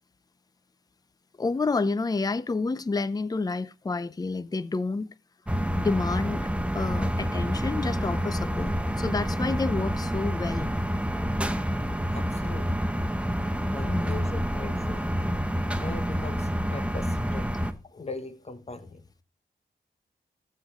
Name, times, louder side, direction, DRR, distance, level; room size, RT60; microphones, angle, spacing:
voice 1, 1.4-5.1 5.8-6.5 6.7-10.7 13.9-14.3, left 3 dB, 20° left, 0.5 m, -29 dB
sound 1, 5.5-17.7, equal, 5° right, 1.0 m, -28 dB
voice 2, 12.1-12.9 13.7-15.2 15.8-17.5 17.8-19.0, left 3 dB, 35° left, 1.4 m, -40 dB
15.0 x 6.5 x 3.7 m
cardioid pair, 60°, 18 cm